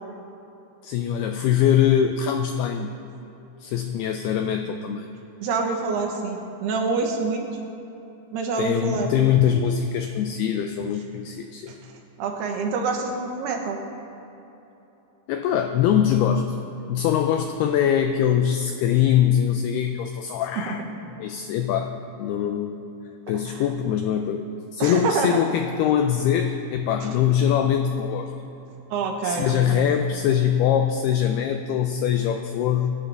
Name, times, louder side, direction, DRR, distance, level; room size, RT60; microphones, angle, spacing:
voice 1, 0.8-3.0 3.6-5.1 8.6-11.8 15.3-16.6 16.9-20.8 21.2-22.8 23.3-28.3 29.2-32.9, left 9 dB, 90° left, 6 dB, 2.2 m, -23 dB
voice 2, 5.4-7.4 8.3-9.1 11.7-11.8 12.2-13.8 20.7-20.8 23.5-23.6 24.8-25.4 27.0-27.1 28.9-29.8, right 4 dB, 75° right, 2 dB, 2.9 m, -26 dB
24.5 x 11.5 x 3.5 m, 3.0 s
omnidirectional pair, 5.2 m